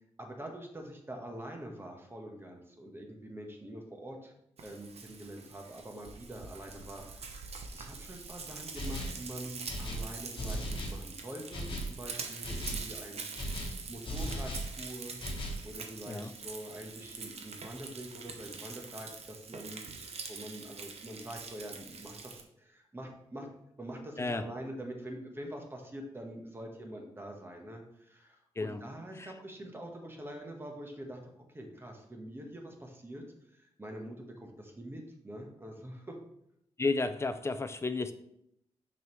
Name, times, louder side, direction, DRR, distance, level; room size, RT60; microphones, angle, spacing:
voice 1, 0.2-4.3 4.6-13.4 13.9-15.2 15.6-23.5 23.8-36.2, right 1 dB, 20° right, 2 dB, 1.2 m, -45 dB
Frying (food), 4.6-22.4, right 5 dB, 60° right, 0.8 m, -45 dB
sound 1, 8.7-9.2 9.7-11.0 11.5-11.9 12.4-12.9 13.3-14.7 15.2-15.7, equal, 45° left, 1.3 m, -37 dB
voice 2, 36.8-38.1, left 3 dB, 25° left, 11 dB, 0.4 m, -32 dB
6.1 x 5.3 x 3.1 m, 0.77 s
cardioid pair, 100°, 12 cm